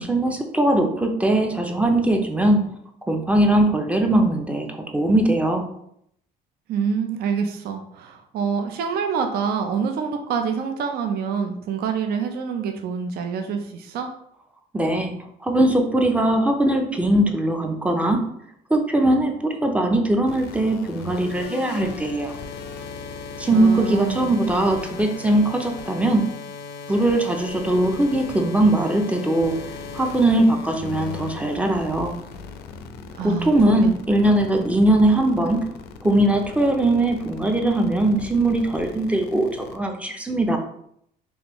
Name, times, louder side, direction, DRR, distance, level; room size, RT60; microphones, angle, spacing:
voice 1, 0.0-2.7 3.1-5.7 14.7-18.3 18.7-22.4 23.4-26.3 26.9-29.6 29.9-32.2 33.2-35.7 36.0-40.6, right 1 dB, 10° right, 3 dB, 0.5 m, -20 dB
voice 2, 6.7-14.1 23.5-24.3 33.1-33.8 34.5-34.6, right 6 dB, 65° right, 5 dB, 0.5 m, -26 dB
sound 1, 20.3-39.8, left 5 dB, 75° left, 0.4 m, -37 dB
3.5 x 2.6 x 3.0 m, 0.72 s
cardioid pair, 110°, 17 cm